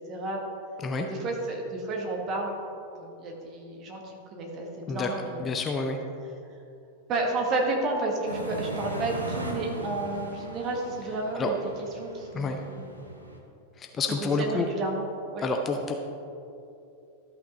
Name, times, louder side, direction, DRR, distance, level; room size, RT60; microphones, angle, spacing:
voice 1, 0.1-0.4 1.0-2.5 2.9-5.4 7.1-12.8 14.0-15.0 15.3-15.5, right 2 dB, 35° right, 0 dB, 1.6 m, -31 dB
voice 2, 5.4-6.0 11.3-11.5 12.3-12.6 13.8-14.7 15.4-15.9, left 4 dB, 25° left, 4 dB, 0.6 m, -28 dB
sound 1, 8.3-13.4, equal, 85° right, 1.0 m, -38 dB
12.5 x 5.8 x 3.9 m, 2.7 s
figure-of-eight pair, 90°, 0 cm